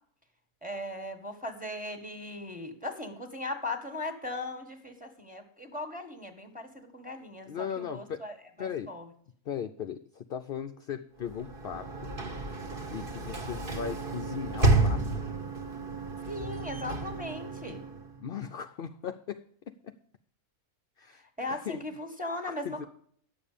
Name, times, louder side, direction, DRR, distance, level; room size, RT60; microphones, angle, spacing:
voice 1, 0.6-9.1 16.3-17.8 21.4-22.9, left 2 dB, 5° right, 6 dB, 1.5 m, -38 dB
voice 2, 7.5-8.2 8.6-9.0 9.5-12.1 12.9-15.2 18.2-19.4 19.8-19.9 21.0-21.2 21.5-21.8 22.5-22.9, left 8 dB, 60° left, 9 dB, 0.6 m, -38 dB
Sliding door / Slam, 11.2-18.2, right 2 dB, 40° right, 1.5 m, -31 dB
10.5 x 7.3 x 6.7 m, 0.62 s
omnidirectional pair, 1.5 m